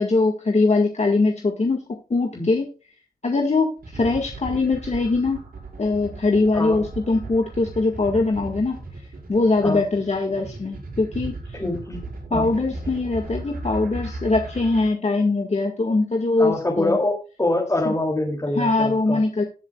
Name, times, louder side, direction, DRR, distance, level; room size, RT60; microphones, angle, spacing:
voice 1, 0.0-1.8 2.1-2.6 3.2-5.4 5.8-8.8 9.3-11.6 12.3-17.0 17.9-18.0 18.6-19.4, left 3 dB, 45° left, 3 dB, 1.8 m, -22 dB
sound 1, 3.8-14.9, right 2 dB, 70° right, 5.5 m, -36 dB
voice 2, 11.5-12.0 12.3-12.5 16.4-17.1 17.4-19.2, left 2 dB, 20° left, -1 dB, 2.9 m, -24 dB
19.5 x 7.3 x 2.4 m, 0.34 s
wide cardioid pair, 80°, 15 cm